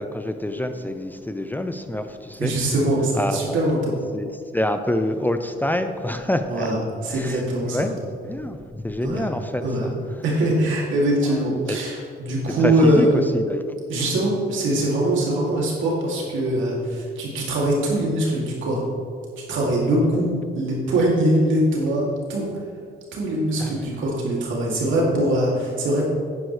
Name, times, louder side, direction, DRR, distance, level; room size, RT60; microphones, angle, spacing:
voice 1, 0.0-2.5 3.2-3.6 4.1-6.7 7.1-7.4 7.7-8.0 8.2-9.6 11.7-11.8 12.6-13.1 13.3-13.7 23.6-24.0, left 1 dB, 10° left, 8 dB, 0.5 m, -26 dB
voice 2, 2.4-3.9 6.5-7.9 9.0-9.3 9.6-9.9 10.2-13.3 13.9-18.8 19.5-22.5 23.1-26.0, right 1 dB, 80° right, -3 dB, 2.7 m, -22 dB
10.5 x 9.5 x 3.3 m, 2.2 s
cardioid pair, 90°, 20 cm